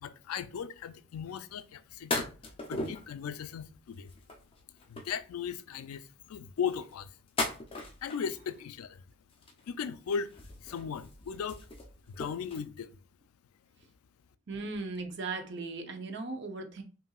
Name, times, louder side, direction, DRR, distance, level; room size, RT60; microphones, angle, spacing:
voice 1, 0.0-2.3 2.7-4.1 4.9-7.2 8.0-9.0 9.7-10.3 10.6-11.7 12.1-13.0, left 7 dB, 90° left, 0.4 m, -37 dB
sound 1, 1.5-1.6 2.1-3.1 3.9-5.2 6.6-8.5 9.3-9.8 10.1-12.6, left 2 dB, 25° left, 0.5 m, -38 dB
voice 2, 14.5-16.8, right 3 dB, 55° right, 0.6 m, -37 dB
5.4 x 2.6 x 2.4 m
head